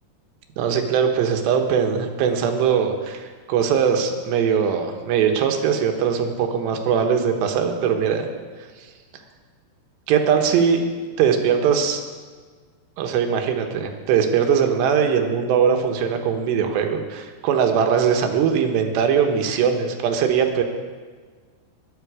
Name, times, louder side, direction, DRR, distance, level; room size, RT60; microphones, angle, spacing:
voice 1, 0.6-8.3 10.1-10.8 11.2-12.0 13.0-20.6, right 7 dB, 80° right, 4 dB, 3.3 m, -21 dB
20.5 x 9.2 x 4.8 m, 1.6 s
omnidirectional pair, 5.0 m